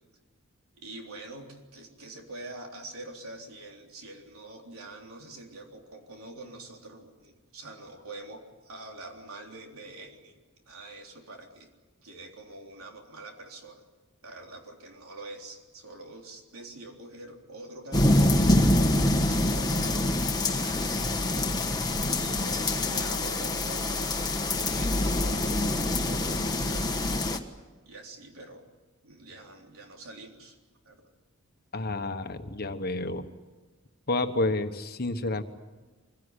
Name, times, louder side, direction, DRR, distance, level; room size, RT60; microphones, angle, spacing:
voice 1, 0.8-11.7 12.0-13.9 14.2-18.6 19.0-27.5 27.9-28.7 29.0-30.6 30.8-31.1, right 2 dB, 85° right, 2 dB, 3.7 m, -45 dB
sound 1, 17.9-27.4, left 1 dB, 20° left, 1.4 m, -25 dB
voice 2, 31.7-33.3 34.1-35.4, left 2 dB, 45° left, 8 dB, 1.3 m, -30 dB
24.5 x 17.0 x 9.9 m, 1.3 s
head